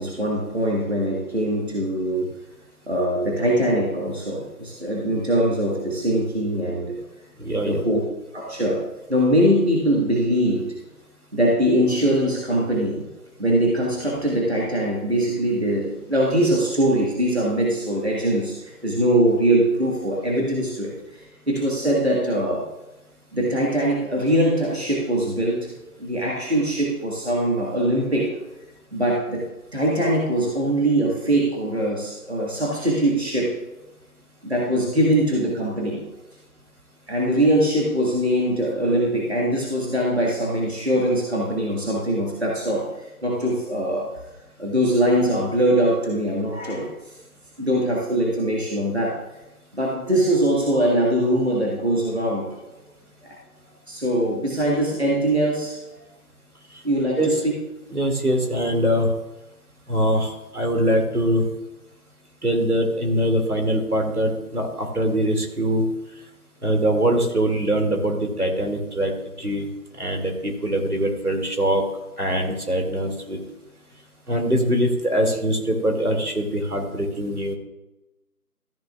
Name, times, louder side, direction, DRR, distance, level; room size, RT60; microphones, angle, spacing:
voice 1, 0.0-2.3 2.9-7.0 7.6-8.0 8.3-8.8 9.1-10.7 11.3-13.1 13.4-20.9 21.5-22.7 23.3-25.7 26.0-28.3 28.9-33.6 34.4-36.0 37.1-44.1 44.6-46.9 47.6-49.2 49.7-52.5 53.2-53.4 53.9-56.0 56.8-57.5, right 1 dB, 45° right, -3 dB, 1.7 m, -22 dB
voice 2, 7.4-7.8 57.2-57.3 57.9-59.1 59.9-61.4 62.4-65.8 66.6-69.1 69.4-69.7 70.0-71.8 72.2-73.4 74.3-77.5, right 1 dB, 70° right, 2 dB, 2.5 m, -22 dB
14.0 x 9.5 x 2.4 m, 0.98 s
figure-of-eight pair, 180°, 46 cm